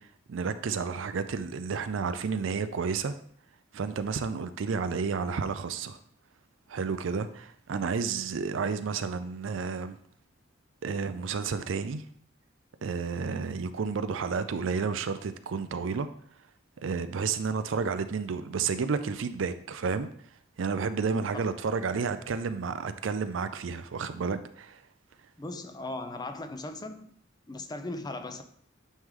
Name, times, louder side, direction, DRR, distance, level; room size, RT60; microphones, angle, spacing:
voice 1, 0.3-3.1 3.7-6.0 6.7-10.0 10.8-12.0 12.8-16.1 16.8-20.1 20.6-24.8, right 5 dB, 75° right, 0.4 m, -31 dB
voice 2, 25.4-27.1 27.5-28.4, left 2 dB, 20° left, 0.5 m, -38 dB
9.1 x 3.2 x 3.7 m
head